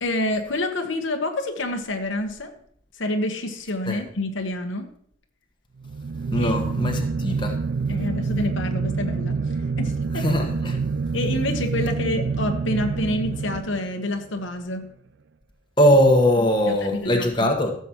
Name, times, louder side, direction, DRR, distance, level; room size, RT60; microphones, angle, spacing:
voice 1, 0.0-2.5 3.0-4.9 6.4-6.5 6.8-7.1 7.9-10.4 11.1-14.8 16.7-17.5, left 1 dB, 70° left, 1.1 m, -28 dB
sound 1, 5.8-14.2, right 4 dB, 60° right, 0.4 m, -27 dB
voice 2, 6.3-7.6 10.1-10.8 15.8-17.7, equal, 25° left, 1.2 m, -20 dB
15.0 x 7.1 x 3.0 m
head